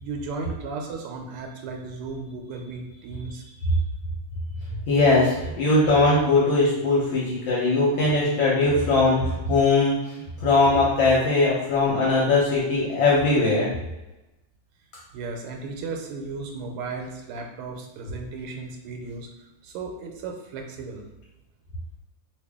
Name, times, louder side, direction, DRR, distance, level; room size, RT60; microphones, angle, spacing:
voice 1, 0.0-3.5 15.1-19.3 19.6-21.1, right 4 dB, 85° right, 2 dB, 1.5 m, -35 dB
voice 2, 4.9-13.7, left 2 dB, 65° left, -6 dB, 1.4 m, -20 dB
3.3 x 2.5 x 3.5 m, 1.0 s
omnidirectional pair, 2.4 m